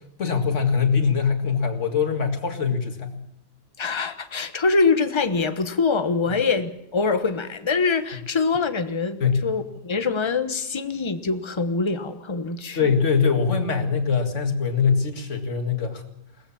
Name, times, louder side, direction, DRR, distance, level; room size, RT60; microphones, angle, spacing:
voice 1, 0.2-3.2 9.2-9.4 12.7-16.0, left 6 dB, 45° left, 2.4 m, -22 dB
voice 2, 3.8-12.9, left 4 dB, 20° left, 1.0 m, -24 dB
22.0 x 18.0 x 7.2 m
omnidirectional pair, 1.8 m